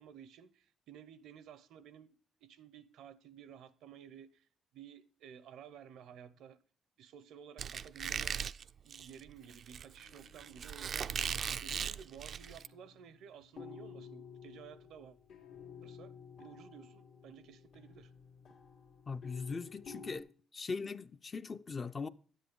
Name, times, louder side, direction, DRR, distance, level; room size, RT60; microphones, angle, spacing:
voice 1, 0.0-4.5 4.7-6.6 7.0-8.4 8.8-11.3 11.6-15.2 15.8-16.1 16.4-18.1, right 8 dB, 85° right, 0.7 m, -54 dB
Squeak, 7.6-12.7, right 7 dB, 55° right, 0.3 m, -39 dB
sound 1, 10.0-11.6 12.4-20.2, left 6 dB, 75° left, 1.8 m, -54 dB
voice 2, 19.1-20.3 20.5-22.1, left 4 dB, 35° left, 0.5 m, -40 dB
10.5 x 8.1 x 3.7 m
cardioid pair, 90°, 0 cm